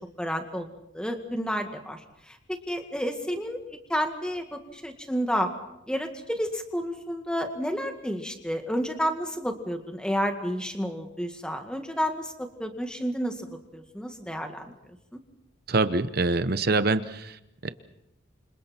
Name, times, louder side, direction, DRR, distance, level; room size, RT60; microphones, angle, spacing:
voice 1, 0.2-5.5 5.9-14.7 15.1-15.2, equal, 5° left, 5 dB, 1.9 m, -31 dB
voice 2, 15.7-17.7, right 3 dB, 50° right, 12 dB, 0.9 m, -25 dB
29.0 x 26.5 x 4.4 m, 0.82 s
head